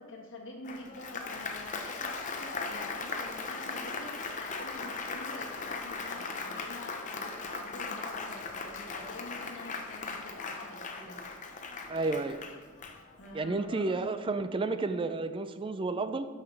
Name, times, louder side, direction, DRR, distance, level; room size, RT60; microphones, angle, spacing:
voice 1, 0.0-11.1 13.2-13.9, left 2 dB, 65° left, -1 dB, 1.6 m, -46 dB
Applause, 0.6-13.4, left 4 dB, 35° left, 0.7 m, -38 dB
voice 2, 11.9-12.4 13.3-16.3, right 3 dB, 25° right, 11 dB, 0.4 m, -31 dB
12.5 x 5.7 x 3.3 m, 1.4 s
head